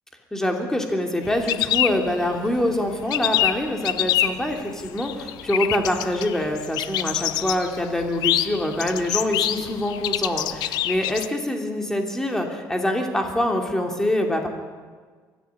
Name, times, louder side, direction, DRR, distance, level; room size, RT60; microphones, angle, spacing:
voice 1, 0.3-14.5, left 1 dB, 5° left, 2 dB, 2.9 m, -25 dB
sound 1, 1.2-2.6 2.9-11.3, left 13 dB, 70° left, 0.9 m, -26 dB
23.5 x 14.5 x 9.5 m, 1.5 s
cardioid pair, 140°, 7 cm